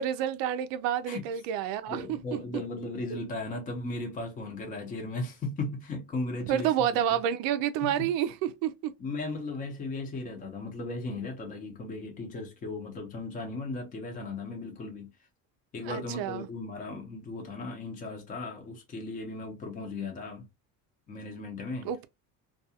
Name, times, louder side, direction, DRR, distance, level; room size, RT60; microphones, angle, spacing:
voice 1, 0.0-2.6 6.5-8.9 15.9-16.5 21.8-22.0, right 10 dB, 65° right, 0.5 m, -29 dB
voice 2, 1.9-7.2 7.8-8.1 9.0-15.1 15.7-20.5 21.1-21.9, left 2 dB, 20° left, 0.7 m, -36 dB
2.4 x 2.3 x 2.7 m
cardioid pair, 150°, 38 cm